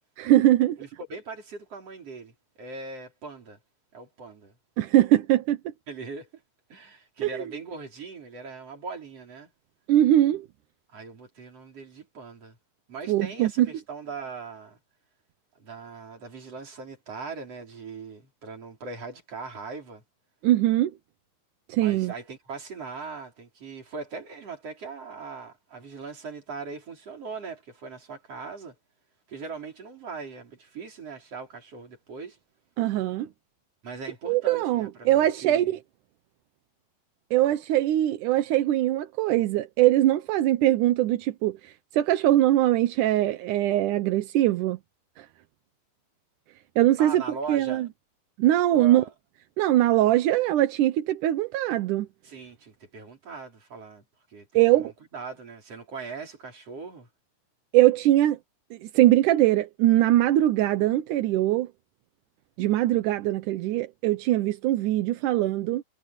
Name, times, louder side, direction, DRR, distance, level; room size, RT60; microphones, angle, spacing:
voice 1, 0.2-0.8 4.8-5.6 7.2-7.4 9.9-10.5 13.1-13.7 20.4-20.9 21.7-22.1 32.8-33.3 34.3-35.8 37.3-44.8 45.2-45.3 46.8-47.2 47.5-47.9 48.4-49.0 49.6-52.1 54.5-54.9 57.7-58.4 58.7-61.7 62.6-65.8, right 14 dB, 70° right, 2.1 m, -22 dB
voice 2, 0.8-3.6 3.9-4.5 5.9-6.4 6.7-9.5 10.9-12.6 12.9-14.8 15.6-20.0 21.8-28.7 29.3-32.4 33.8-35.8 47.0-47.9 48.7-49.1 52.2-54.0 54.3-57.1, right 4 dB, 40° right, 5.4 m, -40 dB
omnidirectional pair, 4.3 m